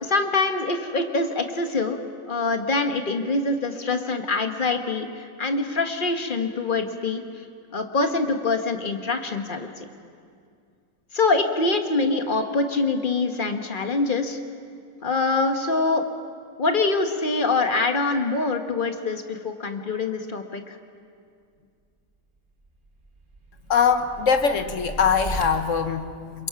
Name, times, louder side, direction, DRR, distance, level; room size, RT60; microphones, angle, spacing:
voice 1, 0.0-2.0 2.3-7.2 7.7-9.9 11.1-14.4 15.0-16.1 16.6-20.8, left 3 dB, 30° left, 6 dB, 1.3 m, -24 dB
sound 1, 22.6-25.4, right 2 dB, 30° right, 1.6 m, -37 dB
voice 2, 23.7-26.5, left 6 dB, 50° left, 8 dB, 1.1 m, -22 dB
27.5 x 22.5 x 5.8 m, 2.2 s
omnidirectional pair, 1.9 m